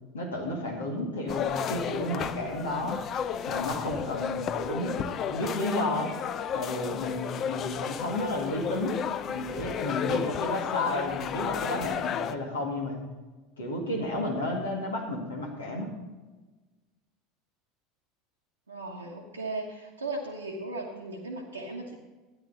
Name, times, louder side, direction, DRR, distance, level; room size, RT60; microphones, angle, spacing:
voice 1, 0.1-3.0 3.5-6.1 6.5-9.0 9.3-13.0 13.6-15.9, left 1 dB, 80° left, 0 dB, 2.1 m, -32 dB
sound 1, 1.3-12.3, left 8 dB, 40° left, 0.6 m, -33 dB
voice 2, 18.7-21.9, right 2 dB, 85° right, -3 dB, 1.3 m, -37 dB
14.0 x 10.0 x 4.2 m, 1.2 s
figure-of-eight pair, 75°, 0 cm